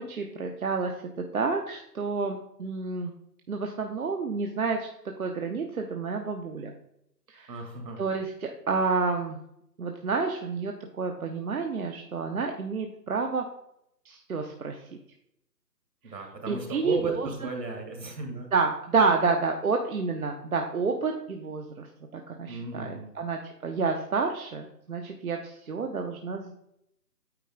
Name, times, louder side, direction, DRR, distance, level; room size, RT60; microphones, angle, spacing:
voice 1, 0.0-3.1 3.5-4.9 5.2-6.7 7.3-7.6 8.0-9.4 9.8-13.4 14.0-14.9 16.5-17.3 18.5-21.9 22.1-26.6, right 4 dB, 60° right, 3 dB, 0.9 m, -29 dB
voice 2, 7.5-8.0 16.0-18.5 22.5-23.1, right 3 dB, 75° right, 3 dB, 2.4 m, -35 dB
9.1 x 4.1 x 3.7 m, 0.78 s
hypercardioid pair, 165°, 49 cm